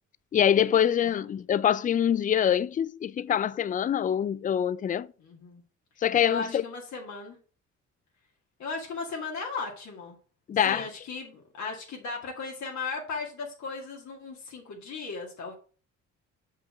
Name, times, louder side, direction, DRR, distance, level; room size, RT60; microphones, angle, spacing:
voice 1, 0.3-5.1 6.0-6.6 10.5-10.9, left 9 dB, 30° left, 0.4 m, -24 dB
voice 2, 5.2-5.6 6.2-7.4 8.6-10.2 10.7-15.5, left 4 dB, 65° left, 2.3 m, -36 dB
5.9 x 5.6 x 5.0 m
cardioid pair, 90°, 30 cm